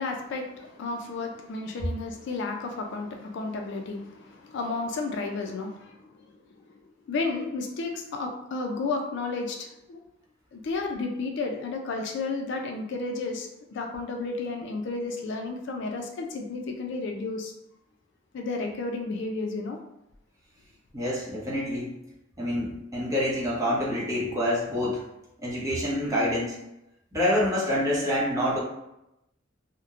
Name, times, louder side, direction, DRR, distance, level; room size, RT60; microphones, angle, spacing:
voice 1, 0.0-6.1 6.7-6.8 7.1-10.0 10.5-17.5 18.3-19.8, left 3 dB, 60° left, 3 dB, 0.3 m, -32 dB
voice 2, 20.9-21.9 22.4-25.0 25.4-26.6 27.1-28.6, left 1 dB, 15° right, -6 dB, 0.7 m, -27 dB
2.9 x 2.0 x 2.4 m, 0.86 s
head